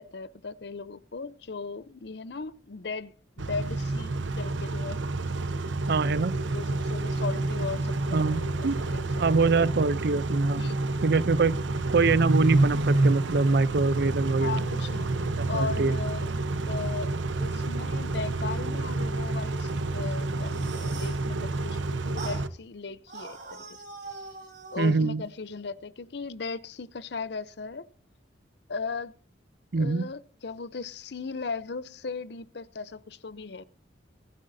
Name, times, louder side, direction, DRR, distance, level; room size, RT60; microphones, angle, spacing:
voice 1, 0.0-5.0 6.5-9.3 10.6-10.8 14.4-15.1 15.5-16.3 16.7-17.1 17.4-23.8 24.7-27.9 28.7-29.1 29.8-33.6, left 4 dB, 60° left, 0.6 m, -37 dB
Car / Idling / Accelerating revving vroom, 3.4-22.5, right 2 dB, 80° right, 0.9 m, -28 dB
voice 2, 5.9-6.4 8.1-8.8 9.2-10.6 11.0-11.6 11.9-14.6 15.3-16.0 24.8-25.2 29.7-30.0, right 4 dB, 60° right, 0.5 m, -24 dB
sound 1, 20.4-21.2 22.2-22.4 23.1-25.0, right 3 dB, 40° right, 6.3 m, -42 dB
22.0 x 11.0 x 2.7 m
head